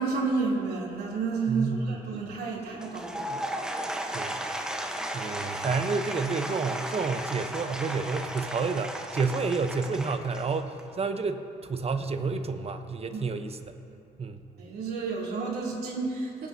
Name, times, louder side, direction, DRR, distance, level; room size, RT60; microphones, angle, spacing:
voice 1, 0.0-3.3 13.1-13.2 14.6-16.5, right 4 dB, 65° right, -4 dB, 3.3 m, -30 dB
voice 2, 1.5-2.0 3.3-3.4 4.1-4.7 5.1-11.4 11.7-13.8 14.2-14.4, right 4 dB, 35° right, 8 dB, 1.0 m, -30 dB
Applause / Crowd, 2.7-10.9, right 1 dB, 5° right, 1.1 m, -35 dB
23.5 x 9.2 x 2.8 m, 2.6 s
cardioid pair, 75°, 17 cm